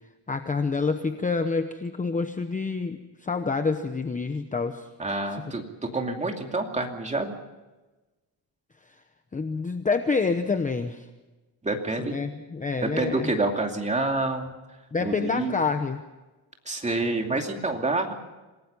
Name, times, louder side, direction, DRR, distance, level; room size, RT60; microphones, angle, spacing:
voice 1, 0.3-4.9 9.3-11.1 12.0-13.3 14.9-16.0, left 4 dB, 15° left, 7 dB, 0.9 m, -27 dB
voice 2, 5.0-7.3 11.6-12.2 12.8-14.5 15.0-15.5 16.7-18.1, right 2 dB, 15° right, 3 dB, 2.6 m, -28 dB
27.5 x 18.5 x 5.5 m, 1.1 s
cardioid pair, 165°, 45 cm